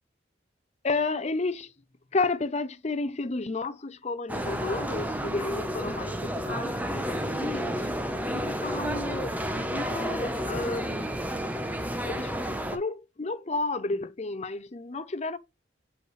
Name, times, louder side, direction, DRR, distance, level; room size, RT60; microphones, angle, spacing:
voice 1, 0.8-1.7 2.1-7.9 8.3-11.2 12.1-12.3 12.7-15.4, left 3 dB, 35° left, 0.6 m, -32 dB
sound 1, 4.3-12.8, equal, 10° right, 0.8 m, -31 dB
6.5 x 5.4 x 3.1 m
head